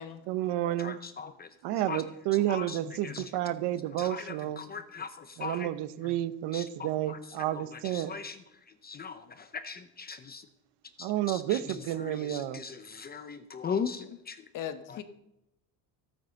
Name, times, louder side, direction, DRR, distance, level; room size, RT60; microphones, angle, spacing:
voice 1, 0.3-1.0 1.6-4.6 5.4-8.1 11.0-12.6, right 14 dB, 70° right, 14 dB, 1.0 m, -31 dB
voice 2, 0.8-1.5 1.9-2.0 2.5-3.3 4.0-5.7 6.0-6.1 6.5-7.2 7.5-8.4 8.8-10.5 11.0-14.4 14.9-15.0, left 6 dB, 20° left, 10 dB, 0.6 m, -39 dB
voice 3, 14.5-15.0, left 9 dB, 45° left, 9 dB, 1.3 m, -38 dB
15.5 x 9.0 x 6.5 m, 0.83 s
cardioid pair, 170°, 42 cm